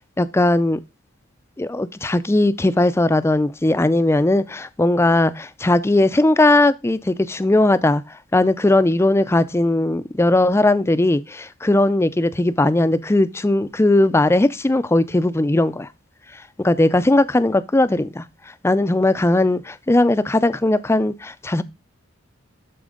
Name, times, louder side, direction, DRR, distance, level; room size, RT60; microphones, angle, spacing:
voice 1, 0.2-0.8 1.6-8.0 8.3-15.9 16.6-18.2 18.6-21.6, left 2 dB, 15° left, 0.4 m, -18 dB
12.5 x 4.3 x 3.7 m
head